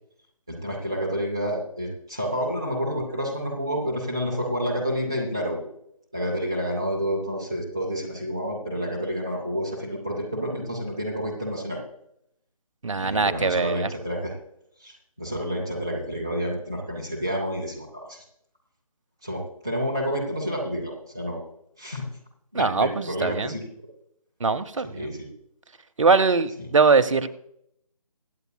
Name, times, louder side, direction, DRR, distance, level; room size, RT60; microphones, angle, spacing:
voice 1, 0.5-5.7 6.1-11.8 13.0-14.3 14.8-18.2 19.2-21.4 21.8-22.0 22.5-23.6 24.9-25.3, equal, 5° right, -2 dB, 0.4 m, -29 dB
voice 2, 12.8-13.9 22.5-23.6 24.4-25.1 26.0-27.3, right 4 dB, 55° right, 11 dB, 0.8 m, -22 dB
23.5 x 8.1 x 2.3 m, 0.76 s
figure-of-eight pair, 160°, 19 cm